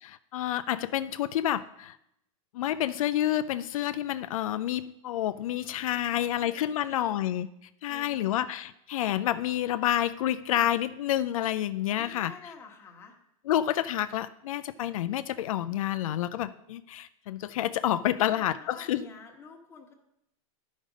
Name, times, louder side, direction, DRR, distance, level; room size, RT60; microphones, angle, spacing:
voice 1, 0.0-2.0 2.5-7.5 7.8-12.3 13.5-19.1, left 12 dB, 80° left, 11 dB, 0.4 m, -29 dB
voice 2, 5.9-7.3 7.9-8.6 12.0-13.1 18.3-19.9, left 4 dB, 15° left, 0 dB, 1.2 m, -49 dB
11.0 x 5.2 x 5.1 m, 0.80 s
supercardioid pair, 155°, 17 cm